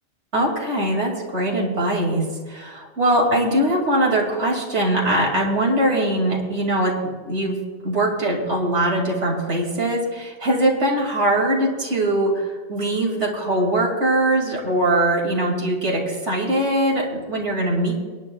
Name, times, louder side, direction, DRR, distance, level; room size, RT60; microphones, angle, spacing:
voice 1, 0.3-6.9 7.2-7.6 7.8-17.9, right 1 dB, 80° right, -2 dB, 2.7 m, -21 dB
25.0 x 10.0 x 2.3 m, 1.5 s
omnidirectional pair, 1.2 m